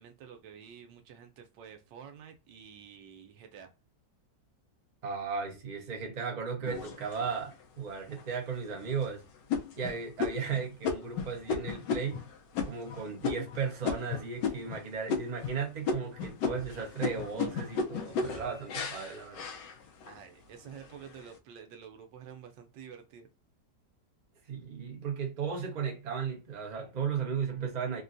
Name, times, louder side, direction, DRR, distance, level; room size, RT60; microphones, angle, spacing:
voice 1, 0.0-3.7 20.0-23.3, right 7 dB, 90° right, 1.4 m, -49 dB
voice 2, 5.0-9.2 9.7-12.2 12.6-19.4 24.5-28.0, right 6 dB, 35° right, 0.7 m, -35 dB
sound 1, 6.7-7.5 8.1-8.2 8.7-9.0 9.5-14.8 15.1-15.6 15.9-20.2 20.7-21.2, left 5 dB, 80° left, 1.3 m, -34 dB
3.8 x 2.2 x 2.6 m
omnidirectional pair, 1.9 m